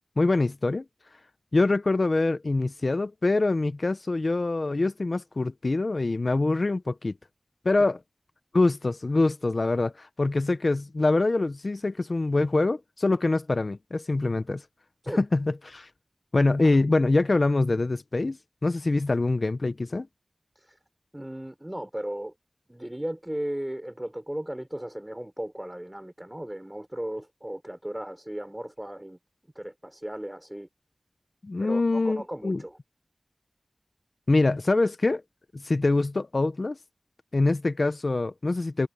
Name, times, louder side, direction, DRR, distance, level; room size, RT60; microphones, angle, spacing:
voice 1, 0.2-0.8 1.5-7.1 7.6-8.0 8.5-14.6 15.1-15.9 16.3-18.4 18.6-20.1 31.4-32.6 34.3-35.2 35.5-36.8 37.3-38.9, left 2 dB, 55° left, 0.8 m, -24 dB
voice 2, 21.1-22.3 22.7-29.2 29.6-30.7 31.6-32.8, right 1 dB, 15° right, 3.9 m, -36 dB
wide cardioid pair, 65°, 0 cm